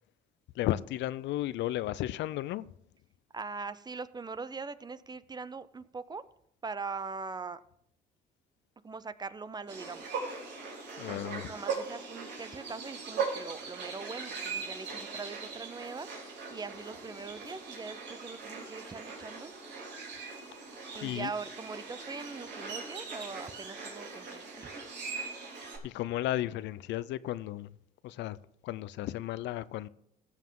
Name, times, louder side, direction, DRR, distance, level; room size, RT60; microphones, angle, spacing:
voice 1, 0.6-2.6 11.0-11.5 21.0-21.3 25.8-27.7 28.0-28.4 28.6-29.9, left 14 dB, 70° left, 0.5 m, -34 dB
voice 2, 3.3-6.2 6.6-7.6 8.8-10.0 11.1-16.1 16.5-19.9 20.9-24.9, right 4 dB, 20° right, 0.6 m, -42 dB
sound 1, 9.7-25.8, right 5 dB, 65° right, 3.6 m, -40 dB
15.0 x 7.4 x 3.8 m
cardioid pair, 90°, 19 cm